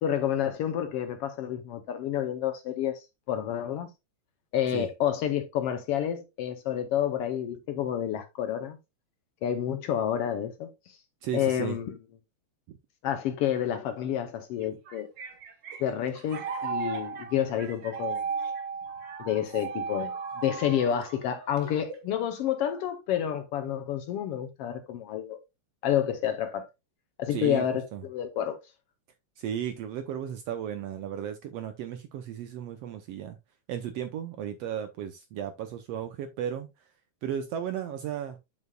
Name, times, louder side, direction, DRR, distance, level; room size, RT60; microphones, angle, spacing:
voice 1, 0.0-3.9 4.5-8.8 9.4-11.0 11.3-12.0 13.0-15.1 15.8-18.2 19.2-25.4 25.8-26.7 27.2-28.6, left 10 dB, 75° left, 1.4 m, -29 dB
voice 2, 11.2-11.8 12.7-12.8 27.3-27.6 27.9-28.0 29.4-33.4 33.7-36.7 37.2-38.4, right 9 dB, 75° right, 1.5 m, -34 dB
sound 1, 14.6-22.1, right 5 dB, 50° right, 1.4 m, -36 dB
7.9 x 7.3 x 2.2 m
omnidirectional pair, 3.4 m